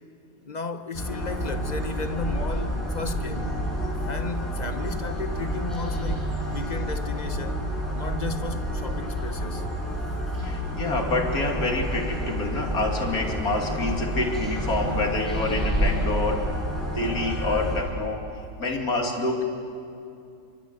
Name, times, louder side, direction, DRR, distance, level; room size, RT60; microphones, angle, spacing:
voice 1, 0.4-3.6 4.1-7.7 7.9-9.7, left 3 dB, 30° left, 1.0 m, -34 dB
sound 1, 0.9-17.8, equal, ahead, 6.3 m, -29 dB
voice 2, 10.4-18.2 18.6-19.4, left 2 dB, 55° left, 3.1 m, -27 dB
27.5 x 24.0 x 8.1 m
omnidirectional pair, 1.9 m